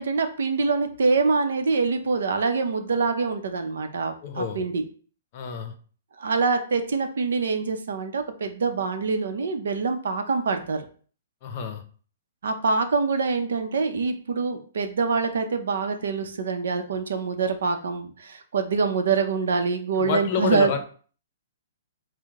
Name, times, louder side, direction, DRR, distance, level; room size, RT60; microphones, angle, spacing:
voice 1, 0.0-4.8 6.2-10.8 12.4-20.7, right 4 dB, 80° right, 6 dB, 0.7 m, -25 dB
voice 2, 4.2-4.6 5.3-5.7 11.4-11.8 20.0-20.8, left 6 dB, 45° left, 7 dB, 0.6 m, -28 dB
4.5 x 2.2 x 3.6 m, 0.42 s
hypercardioid pair, 140°, 0 cm